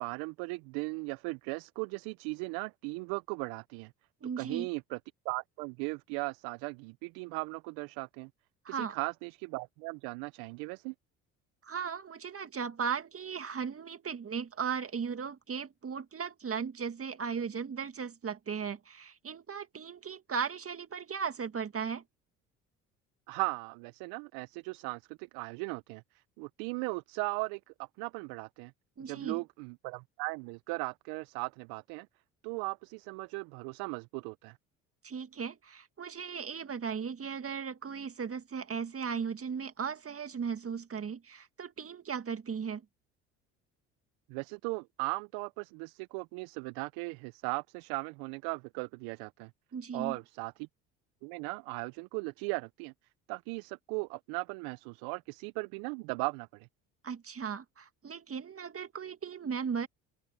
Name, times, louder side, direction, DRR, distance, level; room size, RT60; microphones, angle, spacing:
voice 1, 0.0-3.9 4.4-5.0 5.2-8.3 8.7-10.9 23.3-28.7 29.1-32.1 32.4-34.6 44.3-49.5 49.9-50.7 51.2-52.9 53.3-56.7, right 29 dB, 70° right, 0.7 m, -38 dB
voice 2, 4.2-4.7 8.6-9.0 11.6-22.0 29.0-29.4 35.0-42.8 49.7-50.2 57.0-59.9, right 6 dB, 35° right, 2.0 m, -37 dB
open air
hypercardioid pair, 60°, 38 cm